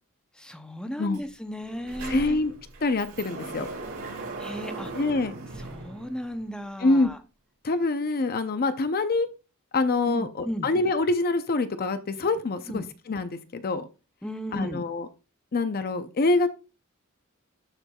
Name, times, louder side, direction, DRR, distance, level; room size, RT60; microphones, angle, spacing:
voice 1, 0.4-2.4 4.4-4.9 5.6-7.2 10.1-10.7 12.7-12.9 14.2-14.8, equal, 5° left, 7 dB, 0.6 m, -35 dB
Sliding door, 1.1-1.2 1.6-6.6, right 3 dB, 75° right, 4.0 m, -39 dB
voice 2, 2.1-2.5 2.8-3.7 4.9-5.3 6.8-7.1 7.6-9.3 9.7-13.9 14.5-15.1 15.5-16.5, left 3 dB, 45° left, 10 dB, 0.6 m, -25 dB
13.0 x 4.5 x 2.3 m, 0.30 s
head